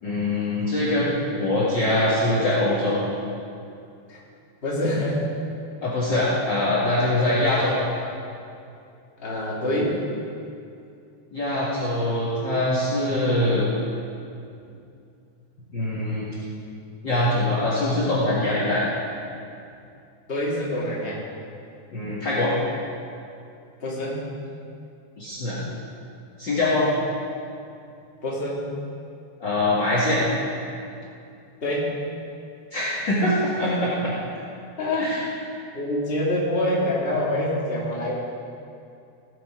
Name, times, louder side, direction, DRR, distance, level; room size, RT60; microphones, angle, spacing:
voice 1, 0.0-3.0 5.8-7.8 11.3-13.7 15.7-16.3 17.0-18.8 21.9-22.5 25.2-25.6 26.4-27.0 29.4-30.3 32.7-34.1 35.0-35.2, left 1 dB, 40° left, -7 dB, 2.2 m, -23 dB
voice 2, 4.6-5.2 7.4-7.7 9.2-10.0 20.3-21.2 23.8-24.3 28.2-28.6 31.6-32.0 34.8-35.1 35.7-38.1, left 1 dB, 20° left, -6 dB, 2.3 m, -26 dB
17.0 x 7.9 x 5.0 m, 2.5 s
omnidirectional pair, 3.4 m